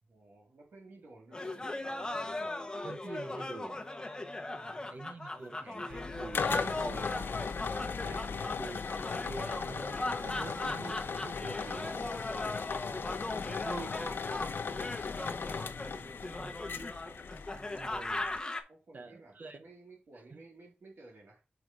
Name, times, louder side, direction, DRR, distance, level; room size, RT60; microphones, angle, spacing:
voice 1, 0.0-2.7 4.4-5.1 8.1-8.5 12.4-12.6 13.2-13.7 14.6-15.5 15.8-16.5 18.7-21.4, right 2 dB, 80° right, 2.2 m, -56 dB
sound 1, 1.3-18.6, left 2 dB, 20° left, 0.8 m, -39 dB
voice 2, 2.8-3.9 4.9-7.4 7.9-8.8 9.3-12.2 13.5-14.1 16.4-16.8 17.8-18.3 18.9-19.6 20.3-20.4, right 3 dB, 50° right, 0.7 m, -46 dB
sound 2, 5.9-18.4, left 5 dB, 65° left, 0.4 m, -38 dB
5.2 x 4.9 x 3.7 m
wide cardioid pair, 125°, 4 cm